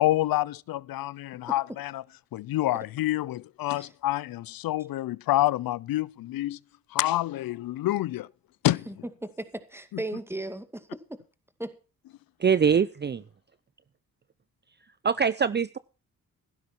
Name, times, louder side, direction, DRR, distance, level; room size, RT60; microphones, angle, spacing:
voice 1, 0.0-2.0 2.3-6.6 6.9-8.3 8.6-9.0 9.9-10.0, left 15 dB, 85° left, 0.6 m, -27 dB
voice 2, 9.2-11.2 11.6-11.8, right 1 dB, 5° right, 2.3 m, -36 dB
voice 3, 12.4-13.2 15.0-15.8, right 6 dB, 30° right, 0.6 m, -23 dB
15.5 x 12.5 x 4.5 m
cardioid pair, 85°, 34 cm